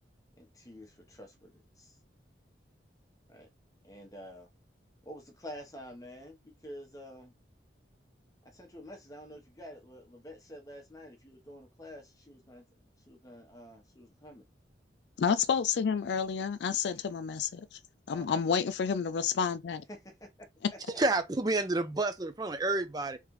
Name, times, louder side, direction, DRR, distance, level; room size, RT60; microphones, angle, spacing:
voice 1, 0.4-2.0 3.3-3.5 3.8-4.5 5.0-7.4 8.4-14.4 18.1-18.4 19.9-21.0, equal, 20° left, 0.9 m, -49 dB
voice 2, 15.2-17.8 18.1-19.8, left 6 dB, 70° left, 0.4 m, -30 dB
voice 3, 20.9-23.2, right 2 dB, 20° right, 0.5 m, -29 dB
3.6 x 3.3 x 3.1 m
head